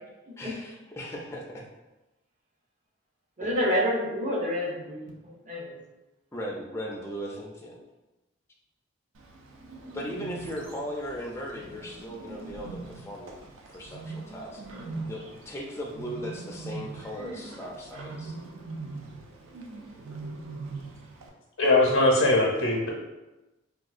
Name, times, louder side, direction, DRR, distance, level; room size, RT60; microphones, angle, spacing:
voice 1, 0.4-1.6 3.4-3.7 6.3-7.8 9.9-13.4 13.7-14.6 15.0-18.4, equal, 15° left, -2 dB, 0.3 m, -38 dB
voice 2, 3.4-5.8, equal, 35° right, -3 dB, 0.6 m, -28 dB
Bird, 9.1-21.3, right 3 dB, 80° right, 0.4 m, -41 dB
voice 3, 21.6-22.9, left 2 dB, 90° left, -2 dB, 0.6 m, -21 dB
3.6 x 2.3 x 2.4 m, 1.0 s
head